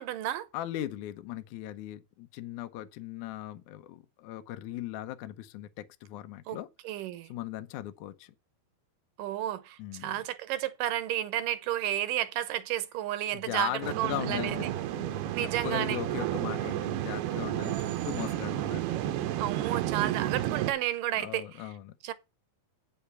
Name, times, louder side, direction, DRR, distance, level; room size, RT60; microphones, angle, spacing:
voice 1, 0.0-0.5 6.5-6.6 6.8-7.3 9.2-14.7 15.3-16.0 19.4-21.7 22.0-22.1, right 13 dB, 75° right, 2.1 m, -32 dB
voice 2, 0.5-6.7 7.3-8.3 9.8-10.2 13.3-19.3 21.2-21.9, left 13 dB, 80° left, 1.8 m, -38 dB
sound 1, 13.8-20.7, right 13 dB, 90° right, 2.9 m, -32 dB
8.8 x 7.0 x 5.5 m
omnidirectional pair, 4.5 m